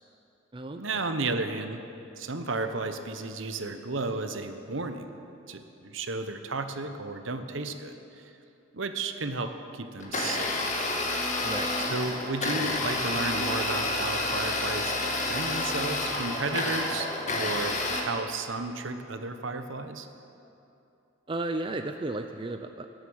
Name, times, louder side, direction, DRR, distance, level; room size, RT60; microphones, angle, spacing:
voice 1, 0.7-1.8 2.2-5.1 5.5-8.3 8.7-10.6 11.9-20.1, right 3 dB, 65° right, 8 dB, 1.0 m, -33 dB
Domestic sounds home sounds, 10.0-18.0, left 2 dB, 35° left, 1.9 m, -29 dB
voice 2, 21.3-22.9, right 2 dB, 25° right, 6 dB, 0.5 m, -33 dB
19.0 x 8.0 x 8.9 m, 2.8 s
head